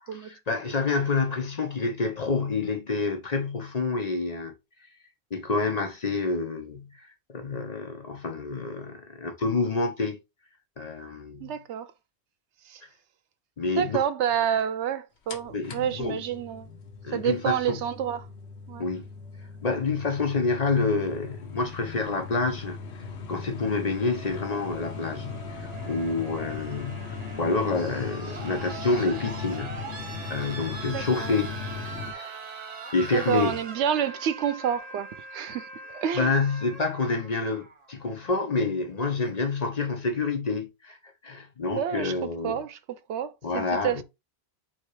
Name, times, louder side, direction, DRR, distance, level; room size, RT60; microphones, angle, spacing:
voice 1, 0.1-4.5 5.3-6.9 7.3-10.2 10.8-11.5 13.6-14.0 15.5-16.2 17.0-17.8 18.8-19.0 19.6-22.8 23.3-29.9 30.3-31.6 31.8-32.4 32.9-33.6 36.2-41.0 41.2-42.6 43.4-44.0, left 3 dB, 40° left, 0.8 m, -28 dB
voice 2, 11.4-11.9 12.7-12.8 13.7-16.7 17.1-18.3 18.7-18.8 30.9-31.3 33.1-36.3 41.7-42.1 42.4-42.8 43.1-44.0, right 9 dB, 85° right, 0.9 m, -29 dB
sound 1, 15.3-32.1, left 5 dB, 75° left, 1.1 m, -39 dB
sound 2, 24.0-38.0 39.2-39.3, right 4 dB, 40° right, 0.8 m, -42 dB
3.7 x 2.8 x 4.7 m
omnidirectional pair, 1.1 m